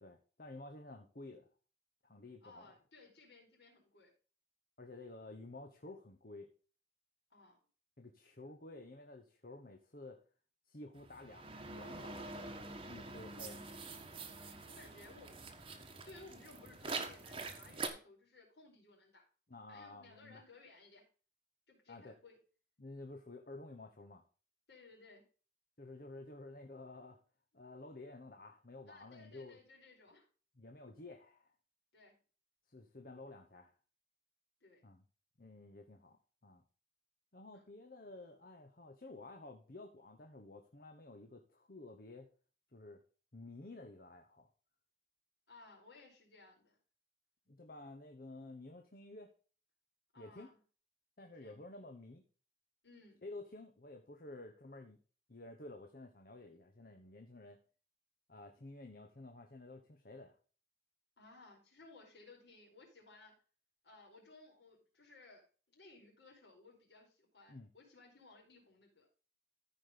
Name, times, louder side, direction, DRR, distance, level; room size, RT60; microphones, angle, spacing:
voice 1, 0.0-1.5 2.0-2.7 4.8-6.5 8.0-10.2 10.7-12.4 12.9-13.7 19.5-20.4 21.9-22.1 22.8-24.2 25.8-27.2 27.5-29.6 30.6-31.5 32.7-33.7 34.8-35.0 35.4-36.6 37.3-42.3 42.7-43.0 43.3-44.5 47.5-49.3 50.2-50.5 51.2-52.2 53.2-55.0 55.3-57.6 58.3-60.4 67.5-67.7, left 2 dB, 50° left, 4 dB, 1.1 m, -52 dB
voice 2, 2.4-4.1 7.3-7.6 14.6-15.4 16.0-19.3 19.7-21.1 21.7-22.4 24.7-25.3 28.9-30.3 31.9-32.1 34.6-34.8 37.5-37.6 45.5-46.8 50.1-50.6 51.2-51.6 52.8-53.2 61.2-63.3 63.8-65.4 65.7-69.1, left 3 dB, 70° left, -1 dB, 4.7 m, -59 dB
sound 1, 11.0-17.9, right 3 dB, 30° right, 1.2 m, -45 dB
14.0 x 5.1 x 3.8 m, 0.38 s
head